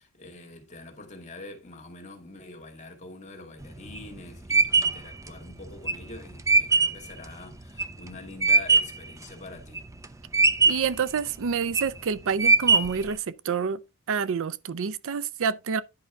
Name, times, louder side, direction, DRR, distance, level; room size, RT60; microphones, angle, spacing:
voice 1, 0.0-9.8, left 2 dB, 35° left, 2.5 m, -45 dB
sound 1, 3.6-9.1 9.5-10.1 10.3-11.0 11.5-12.0 12.4-13.1, right 4 dB, 15° right, 0.6 m, -21 dB
voice 2, 10.7-13.8 14.1-15.8, right 6 dB, 65° right, 0.5 m, -28 dB
10.5 x 5.6 x 3.5 m
head